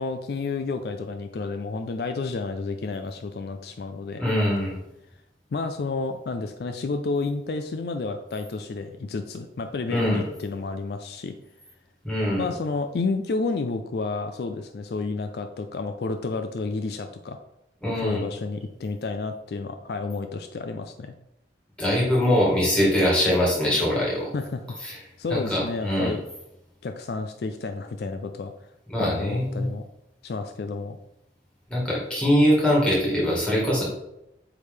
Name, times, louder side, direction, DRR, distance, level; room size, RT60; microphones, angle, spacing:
voice 1, 0.0-4.2 5.5-11.3 12.4-17.4 18.0-21.1 24.3-26.2 26.8-28.5 29.0-29.9 30.2-31.0, left 3 dB, 60° left, 7 dB, 0.4 m, -30 dB
voice 2, 4.2-4.8 9.9-10.2 12.0-12.5 17.8-18.2 21.8-24.3 24.8-25.0 25.3-26.1 28.9-29.6 31.7-33.8, equal, 5° left, -5 dB, 2.0 m, -22 dB
8.2 x 3.3 x 3.6 m, 0.85 s
head